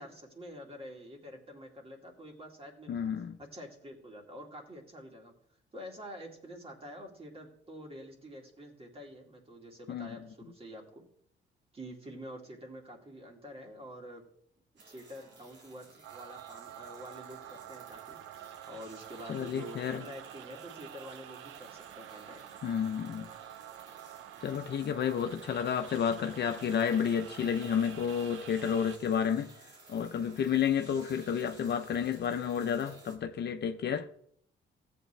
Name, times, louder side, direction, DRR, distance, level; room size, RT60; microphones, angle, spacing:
voice 1, 0.0-3.1 3.4-5.3 5.7-11.0 11.7-14.2 14.9-22.4, equal, 30° right, 2.5 m, -47 dB
voice 2, 2.9-3.4 9.9-10.1 19.3-20.0 22.6-23.3 24.4-29.5 29.9-34.1, left 8 dB, 60° left, 0.8 m, -31 dB
sound 1, 14.8-33.2, right 3 dB, 65° right, 2.6 m, -57 dB
sound 2, 16.0-29.0, right 10 dB, 80° right, 0.6 m, -48 dB
14.5 x 8.2 x 3.4 m
cardioid pair, 90°, 20 cm